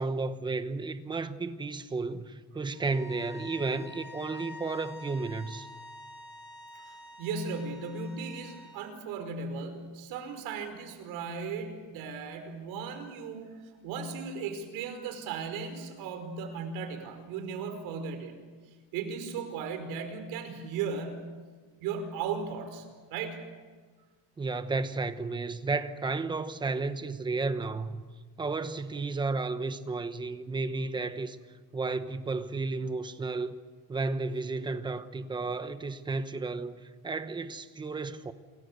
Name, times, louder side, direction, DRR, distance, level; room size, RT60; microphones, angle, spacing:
voice 1, 0.0-5.7 24.4-28.0 28.4-31.4 31.7-33.6 33.9-38.3, right 3 dB, 15° right, 1.0 m, -33 dB
sound 1, 2.7-8.8, left 2 dB, 30° left, 6.0 m, -47 dB
voice 2, 6.7-13.5 13.8-18.4 18.9-21.3 21.8-22.8 23.1-23.4, right 5 dB, 85° right, 5.1 m, -36 dB
28.5 x 22.5 x 6.8 m
cardioid pair, 175°, 35 cm